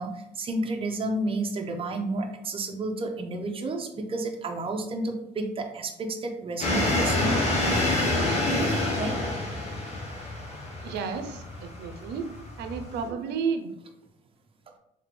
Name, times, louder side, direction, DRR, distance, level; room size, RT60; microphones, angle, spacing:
voice 1, 0.0-7.4 8.4-9.1, right 2 dB, 35° right, 3 dB, 0.7 m, -31 dB
sound 1, 6.6-13.1, left 2 dB, 40° left, 1.4 m, -27 dB
voice 2, 10.8-12.3 12.6-13.7, right 6 dB, 75° right, 7 dB, 0.6 m, -32 dB
3.6 x 3.3 x 3.3 m, 0.80 s
cardioid pair, 110°, 17 cm